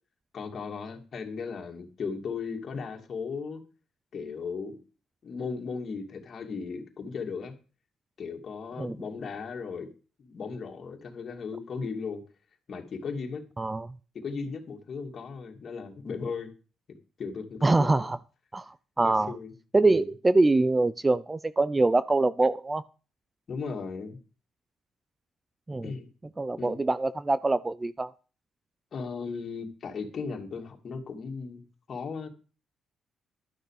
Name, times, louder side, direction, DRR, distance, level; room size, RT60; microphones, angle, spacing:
voice 1, 0.3-3.6 4.1-4.8 5.2-7.5 8.2-9.9 10.2-12.2 12.7-13.4 14.1-16.5 17.2-18.1 19.0-19.5 19.8-20.1 23.5-24.2 25.8-26.1 26.6-26.8 28.9-32.3, left 5 dB, 50° left, 2 dB, 2.5 m, -36 dB
voice 2, 17.6-18.2 18.5-19.3 19.7-22.8 25.7-25.9 26.4-28.1, right 2 dB, 20° right, 17 dB, 0.5 m, -24 dB
12.0 x 6.7 x 6.5 m, 0.36 s
cardioid pair, 90°, 0 cm